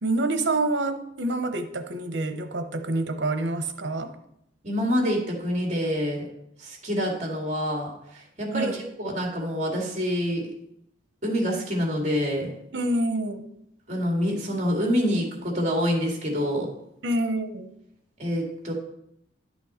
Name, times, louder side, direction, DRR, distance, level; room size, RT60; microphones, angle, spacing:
voice 1, 0.0-4.1 8.5-8.8 12.7-13.4 17.0-17.7, right 2 dB, 80° right, 8 dB, 0.9 m, -27 dB
voice 2, 4.6-6.2 6.6-10.4 11.2-12.5 13.9-16.7 18.2-18.7, equal, 40° right, 0 dB, 2.3 m, -26 dB
11.0 x 6.2 x 4.3 m, 0.78 s
head